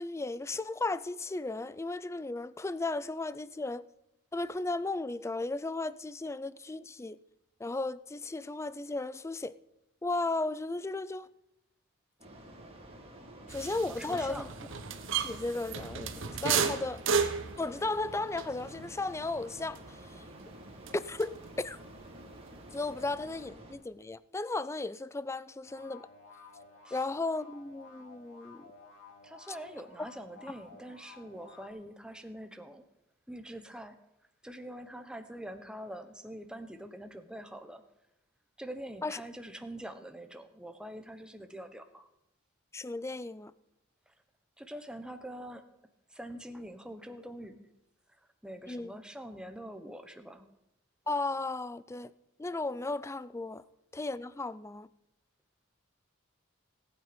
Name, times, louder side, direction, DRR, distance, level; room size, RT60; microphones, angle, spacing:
voice 1, 0.0-3.8 4.3-7.2 7.6-9.5 10.0-11.3 13.5-14.5 15.1-17.0 17.6-20.2 20.9-21.8 22.7-26.0 26.9-28.7 39.0-39.2 42.7-43.5 48.7-48.9 51.1-52.1 52.4-53.6 53.9-54.9, left 2 dB, 15° left, 0.4 m, -35 dB
sound 1, 12.2-23.7, right 1 dB, 30° right, 2.7 m, -50 dB
sound 2, 13.5-21.6 21.9-23.1, right 6 dB, 65° right, 1.2 m, -35 dB
voice 2, 14.0-14.5 26.8-27.0 29.2-32.8 33.3-33.9 34.4-37.8 38.6-42.1 44.1-44.2 44.6-45.6 46.1-47.7 48.4-50.5, right 1 dB, 5° right, 1.0 m, -44 dB
sound 3, 25.6-31.7, left 4 dB, 80° left, 2.5 m, -54 dB
18.5 x 9.0 x 5.2 m
head